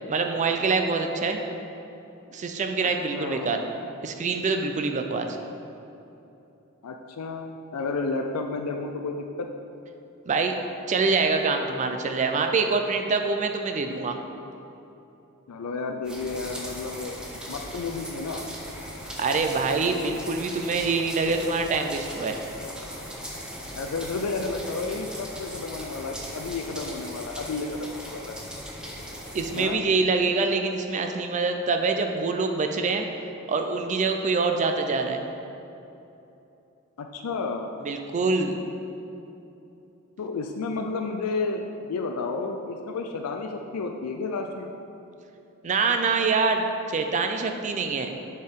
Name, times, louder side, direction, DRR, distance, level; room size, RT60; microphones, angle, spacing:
voice 1, 0.1-1.4 2.3-3.6 4.0-5.4 10.3-10.5 10.9-14.2 19.2-22.4 29.3-33.1 33.5-35.2 37.8-38.6 45.6-48.1, right 4 dB, 35° right, 5 dB, 0.4 m, -25 dB
voice 2, 3.1-3.6 6.8-9.5 15.5-17.2 17.5-18.4 23.7-28.4 29.5-29.8 37.0-37.7 40.2-44.7, left 3 dB, 80° left, 3 dB, 0.4 m, -31 dB
sound 1, 16.0-29.6, equal, 5° right, 0.8 m, -38 dB
9.6 x 4.4 x 3.6 m, 2.9 s
head